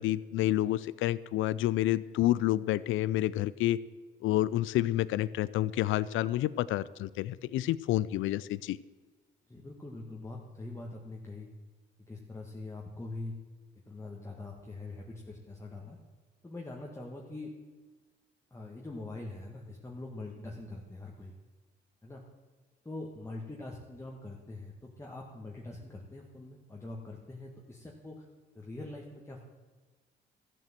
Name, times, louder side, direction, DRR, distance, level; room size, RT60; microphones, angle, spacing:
voice 1, 0.0-3.8 4.2-8.8, left 14 dB, 80° left, 18 dB, 0.4 m, -29 dB
voice 2, 9.5-11.5 12.1-13.3 13.9-16.0 16.4-17.5 18.5-21.3 22.0-22.2 22.8-28.3 28.6-29.4, left 2 dB, 15° left, -1 dB, 1.6 m, -43 dB
13.5 x 7.6 x 7.6 m, 1.4 s
cardioid pair, 90°, 20 cm